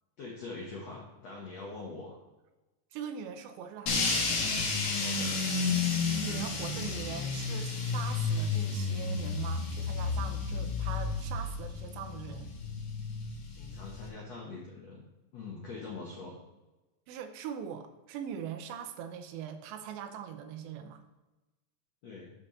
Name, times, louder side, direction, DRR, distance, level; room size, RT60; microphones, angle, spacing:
voice 1, 0.2-2.2 5.0-5.4 13.5-15.1 15.3-16.4 22.0-22.3, left 3 dB, 90° left, -2 dB, 1.4 m, -43 dB
voice 2, 2.9-4.5 6.2-12.5 17.1-21.0, right 8 dB, 85° right, 7 dB, 2.9 m, -42 dB
sound 1, 3.9-14.1, left 4 dB, 60° left, 2.1 m, -32 dB
7.3 x 6.5 x 4.4 m, 1.1 s
omnidirectional pair, 5.0 m